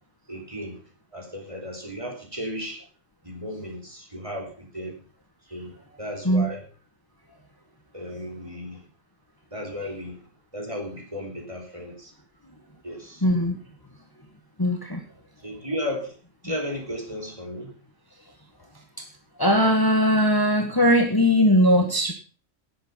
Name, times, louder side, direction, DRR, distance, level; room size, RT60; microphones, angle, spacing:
voice 1, 0.3-0.8 1.1-2.8 3.2-5.0 5.5-6.6 7.9-8.8 9.5-10.2 10.5-12.1 12.8-13.2 15.4-16.2 16.4-17.7, equal, 25° right, 1 dB, 3.6 m, -34 dB
voice 2, 13.2-13.6 14.6-15.0 19.4-22.1, equal, 15° left, 2 dB, 1.8 m, -19 dB
17.5 x 8.1 x 5.7 m, 0.38 s
omnidirectional pair, 1.3 m